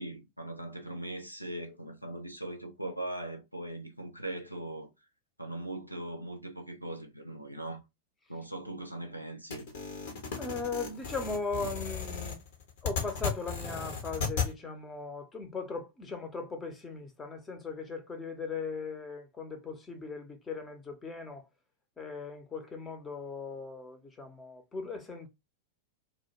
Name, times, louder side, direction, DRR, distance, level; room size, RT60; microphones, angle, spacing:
voice 1, 0.0-4.9 5.4-7.8 8.3-9.7, right 1 dB, 90° right, 0.4 m, -40 dB
sound 1, 9.5-14.5, left 6 dB, 55° left, 0.7 m, -35 dB
voice 2, 10.4-12.4 12.8-21.4 22.0-25.3, left 4 dB, 15° left, 0.6 m, -38 dB
2.2 x 2.1 x 2.8 m
figure-of-eight pair, 90°, 0 cm